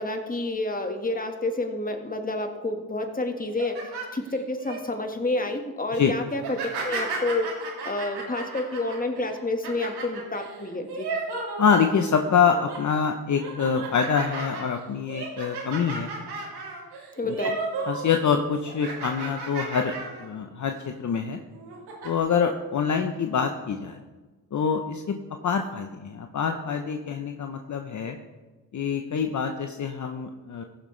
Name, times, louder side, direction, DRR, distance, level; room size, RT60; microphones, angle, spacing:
voice 1, 0.0-3.8 4.1-6.6 6.8-7.5 7.8-11.1 17.2-17.6, left 2 dB, 20° left, 5 dB, 1.6 m, -29 dB
sound 1, 3.4-4.8 5.3-5.6 6.3-12.1 12.4-12.9 13.3-18.1 18.3-20.3 20.7-20.8 21.5-22.1, right 3 dB, 90° right, 2.7 m, -34 dB
voice 2, 11.6-16.1 17.2-17.3 17.9-19.9 20.2-21.4 22.0-24.0 24.5-25.2 25.4-28.2 28.7-30.6, left 6 dB, 50° left, 6 dB, 0.8 m, -25 dB
15.5 x 7.2 x 3.3 m, 1.2 s
cardioid pair, 70°, 38 cm